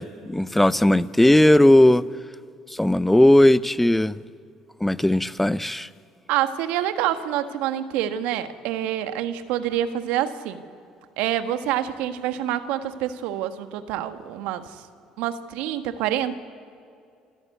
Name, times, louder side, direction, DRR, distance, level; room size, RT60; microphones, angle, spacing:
voice 1, 0.0-2.0 2.7-4.2 4.8-5.9, left 1 dB, 5° left, 0.7 m, -17 dB
voice 2, 6.3-10.6 11.2-14.8 15.2-16.4, right 11 dB, 75° right, 1.4 m, -27 dB
27.5 x 14.5 x 8.4 m
hypercardioid pair, 60°, 2 cm